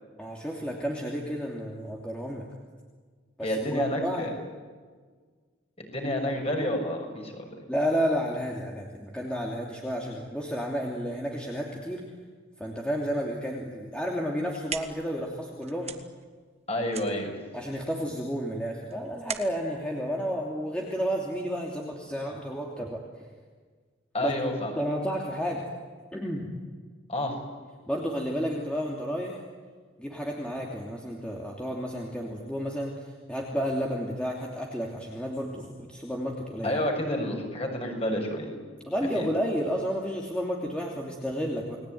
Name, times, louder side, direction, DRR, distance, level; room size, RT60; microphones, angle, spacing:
voice 1, 0.2-2.5 3.4-4.3 7.7-12.0 12.6-15.9 17.5-23.0 24.2-24.3 24.8-25.6 26.1-26.5 27.9-29.4 30.0-33.0 33.3-36.7 38.9-41.8, equal, 5° left, -2 dB, 2.9 m, -31 dB
voice 2, 3.4-4.3 5.8-7.5 16.7-17.3 24.1-24.7 27.1-27.3 36.6-38.5 39.1-39.3, left 1 dB, 30° left, 2 dB, 6.5 m, -29 dB
sound 1, 14.2-21.1, right 7 dB, 30° right, 1.7 m, -42 dB
30.0 x 20.5 x 9.4 m, 1.5 s
head